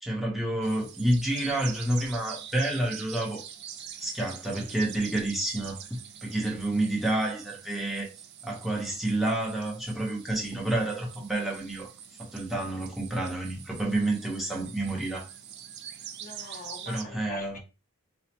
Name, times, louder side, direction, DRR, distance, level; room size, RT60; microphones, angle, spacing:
voice 1, 0.0-3.4 4.0-8.1 8.4-11.9 12.2-15.3 16.9-17.6, right 1 dB, ahead, 0.9 m, -29 dB
sound 1, 0.6-17.0, right 9 dB, 50° right, 0.4 m, -45 dB
voice 2, 16.2-17.6, left 3 dB, 40° left, 0.8 m, -43 dB
4.7 x 2.1 x 2.9 m
head